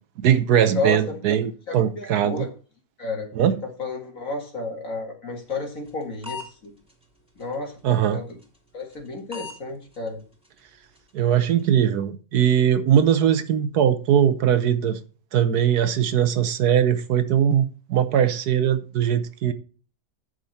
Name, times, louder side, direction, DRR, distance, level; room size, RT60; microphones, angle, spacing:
voice 1, 0.2-2.4 3.4-3.6 7.8-8.2 11.1-15.0 15.3-19.5, right 9 dB, 75° right, 1.4 m, -20 dB
voice 2, 1.7-2.5 3.0-3.3 3.8-6.7 7.4-7.8 8.1-8.4 8.7-10.2, left 3 dB, 55° left, 2.4 m, -31 dB
sound 1, 5.5-6.5 6.9-7.0 7.4-7.5 7.9-8.0 8.4-8.6 8.9-9.1 9.3-9.6 9.9-10.1 10.4-10.6 11.0-11.1 11.5-11.6, left 4 dB, 5° right, 2.9 m, -37 dB
10.5 x 6.7 x 4.2 m
omnidirectional pair, 1.7 m